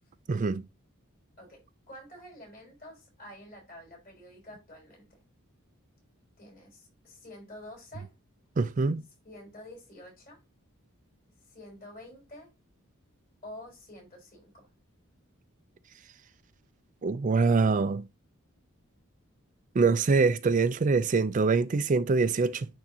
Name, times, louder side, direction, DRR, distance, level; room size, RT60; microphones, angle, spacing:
voice 1, 0.3-0.6 8.6-9.0 17.0-18.1 19.8-22.7, right 4 dB, 35° right, 0.4 m, -24 dB
voice 2, 1.4-5.2 6.4-8.1 9.2-10.4 11.4-12.5 13.4-14.7, left 1 dB, 40° left, 4.5 m, -48 dB
9.9 x 3.7 x 2.8 m
head